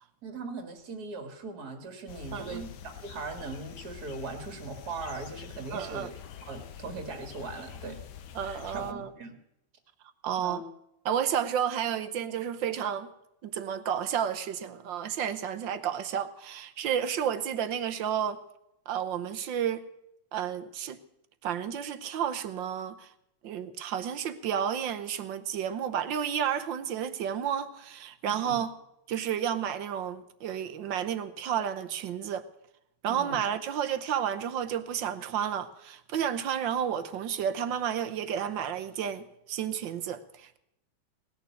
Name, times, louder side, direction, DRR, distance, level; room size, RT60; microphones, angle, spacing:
voice 1, 0.2-6.1 6.4-8.0 8.4-9.4 10.4-10.6 28.3-28.6 33.1-33.4, right 3 dB, 45° right, 2.4 m, -40 dB
sound 1, 2.1-8.9, left 9 dB, 60° left, 1.3 m, -46 dB
voice 2, 2.3-2.7 5.7-6.1 8.3-9.1 10.2-10.6 11.0-13.1 13.4-18.4 18.9-19.8 20.3-21.0 21.4-23.1 23.4-28.7 29.1-32.4 33.0-40.6, right 9 dB, 65° right, 1.5 m, -31 dB
18.5 x 6.8 x 9.2 m
omnidirectional pair, 2.3 m